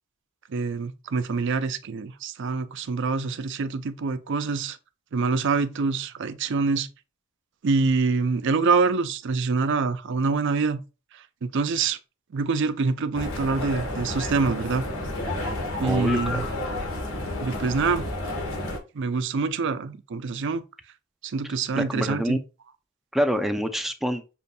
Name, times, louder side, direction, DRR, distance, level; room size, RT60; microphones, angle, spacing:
voice 1, 0.5-4.8 5.1-6.9 7.6-10.8 11.5-12.0 12.3-14.9 15.8-16.5 17.4-18.1 18.9-20.6 21.2-22.4, right 4 dB, 60° right, 0.4 m, -25 dB
sound 1, 13.1-18.8, left 2 dB, 85° left, 1.4 m, -31 dB
voice 2, 15.8-16.8 21.4-22.4 23.1-24.2, equal, ahead, 0.4 m, -27 dB
6.7 x 2.6 x 2.3 m
head